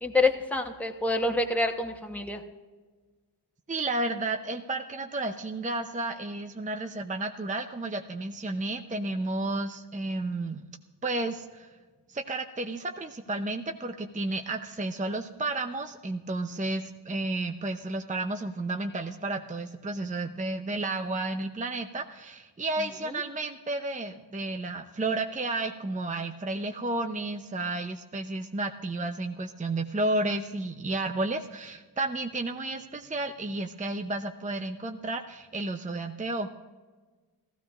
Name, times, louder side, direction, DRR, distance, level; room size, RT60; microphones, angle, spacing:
voice 1, 0.0-2.4 23.1-23.2, left 2 dB, 5° left, 3 dB, 1.1 m, -27 dB
voice 2, 3.7-10.6 11.0-11.7 12.1-36.5, right 2 dB, 20° right, 5 dB, 0.6 m, -32 dB
16.5 x 14.5 x 2.5 m, 1.3 s
wide cardioid pair, 70°, 42 cm